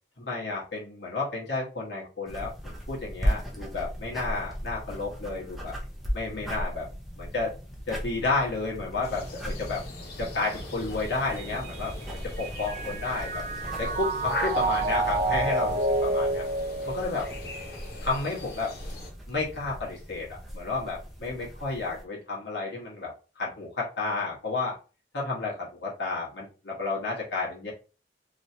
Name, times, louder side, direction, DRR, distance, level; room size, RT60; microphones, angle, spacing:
voice 1, 0.2-5.7 6.1-6.9 7.2-7.5 7.9-9.8 10.2-11.9 12.4-13.4 13.8-16.4 16.8-17.3 18.0-18.7 19.3-23.1 23.4-24.8 25.1-27.7, left 3 dB, 85° left, -4 dB, 1.4 m, -31 dB
sound 1, 2.3-22.0, equal, ahead, 0.7 m, -37 dB
sound 2, 9.0-19.1, left 2 dB, 60° left, 0.9 m, -40 dB
Mallet percussion, 11.4-17.8, right 2 dB, 45° right, 0.4 m, -29 dB
3.1 x 2.8 x 2.7 m, 0.34 s
head